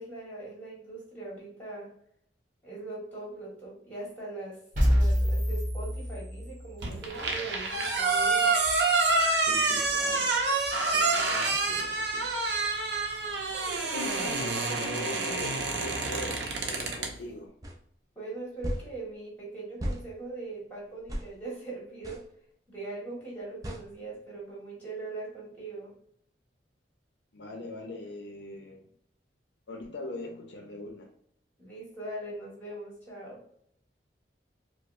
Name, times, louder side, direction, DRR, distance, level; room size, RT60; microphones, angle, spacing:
voice 1, 0.0-2.0 2.6-4.6 4.8-8.6 18.1-22.2 22.7-26.0 31.6-33.4, right 2 dB, 10° left, -5 dB, 1.5 m, -41 dB
sound 1, 4.8-6.8, equal, 45° right, 1.2 m, -26 dB
sound 2, 6.8-17.1, right 3 dB, 65° right, 0.7 m, -27 dB
voice 2, 9.4-10.4 10.9-12.3 13.9-17.5 27.3-28.8 29.7-31.1, left 1 dB, 70° left, 2 dB, 0.6 m, -41 dB
sound 3, 17.6-17.8 18.6-18.9 19.8-20.0 21.1-21.3 22.0-22.2 23.6-23.8, equal, 20° right, 0.4 m, -34 dB
4.7 x 2.0 x 2.4 m, 0.67 s
head